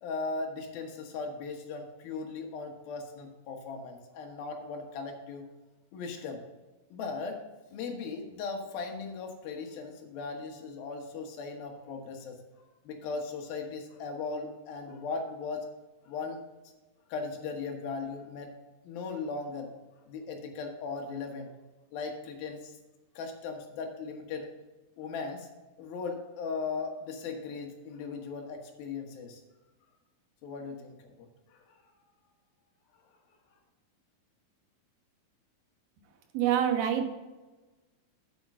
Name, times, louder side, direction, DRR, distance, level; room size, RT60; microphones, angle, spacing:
voice 1, 0.0-5.5 5.9-6.4 6.9-7.4 7.7-15.7 16.0-16.4 17.1-18.5 18.8-19.7 20.1-21.5 21.9-22.8 23.2-24.5 25.0-25.5 25.8-29.4 30.4-31.7, left 4 dB, 85° left, 3 dB, 3.2 m, -38 dB
voice 2, 36.3-37.1, right 9 dB, 90° right, 5 dB, 3.0 m, -26 dB
8.7 x 8.3 x 3.7 m, 1.2 s
omnidirectional pair, 4.1 m